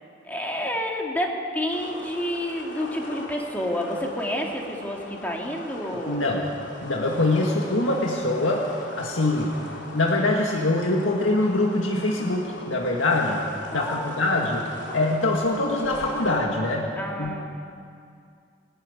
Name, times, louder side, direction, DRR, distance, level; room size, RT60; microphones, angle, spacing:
voice 1, 0.2-6.3 13.7-14.4 17.0-17.4, equal, 10° left, 0 dB, 2.2 m, -29 dB
sound 1, 1.7-16.4, left 1 dB, 65° left, 3.4 m, -40 dB
voice 2, 6.1-6.5 6.8-9.5 9.9-13.4 13.7-14.7 14.9-16.9 17.2-17.4, left 2 dB, 80° left, -1 dB, 2.0 m, -24 dB
21.5 x 12.5 x 9.8 m, 2.3 s
head